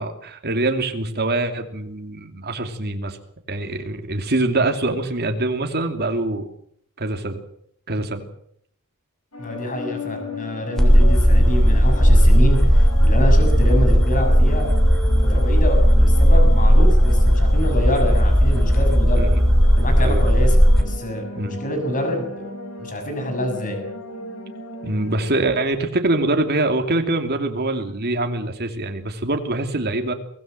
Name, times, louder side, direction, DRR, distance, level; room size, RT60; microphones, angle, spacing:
voice 1, 0.0-3.2 3.5-6.4 7.0-7.4 7.9-8.3 19.2-19.3 20.0-20.2 21.4-21.6 24.8-30.1, right 2 dB, 45° right, 5 dB, 2.7 m, -24 dB
sound 1, 9.3-25.4, left 2 dB, 75° left, 8.0 m, -36 dB
voice 2, 9.4-14.7 15.1-19.3 19.8-20.6 20.8-22.3 22.8-23.8, left 1 dB, 40° left, 5 dB, 6.8 m, -27 dB
sound 2, 10.8-20.8, equal, ahead, 3.3 m, -15 dB
23.5 x 17.5 x 7.6 m, 0.68 s
head